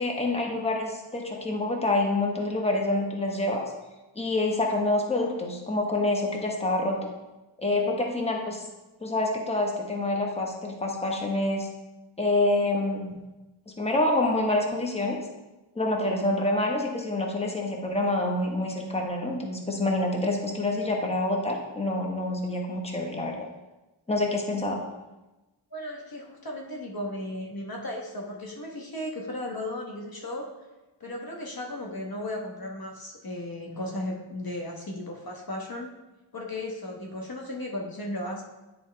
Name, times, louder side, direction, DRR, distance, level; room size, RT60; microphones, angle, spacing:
voice 1, 0.0-3.6 4.1-7.0 7.6-8.6 9.0-11.7 12.2-13.2 13.8-15.2 15.7-23.5 24.1-24.8, left 2 dB, 15° left, 0 dB, 1.1 m, -27 dB
voice 2, 25.7-30.5 31.0-35.9 36.3-38.4, left 1 dB, 50° left, 0 dB, 1.1 m, -35 dB
9.3 x 4.6 x 3.3 m, 1.1 s
wide cardioid pair, 70°, 47 cm